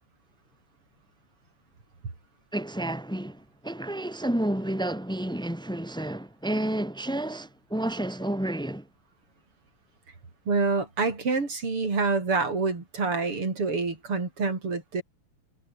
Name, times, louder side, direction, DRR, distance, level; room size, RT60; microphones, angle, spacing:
voice 1, 2.5-8.8, right 1 dB, ahead, 2.4 m, -30 dB
voice 2, 10.5-15.0, right 4 dB, 90° right, 5.7 m, -27 dB
omnidirectional pair, 2.4 m